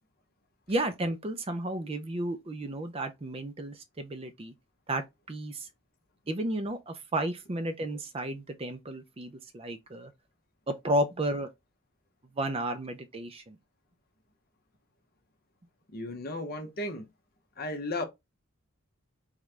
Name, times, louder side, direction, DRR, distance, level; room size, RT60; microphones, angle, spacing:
voice 1, 0.7-4.5 4.9-5.7 6.3-10.1 10.7-11.5 12.4-13.6, right 1 dB, 25° right, 0.4 m, -32 dB
voice 2, 15.9-17.1 17.6-18.0, left 2 dB, 45° left, 0.8 m, -34 dB
3.6 x 3.1 x 3.3 m
head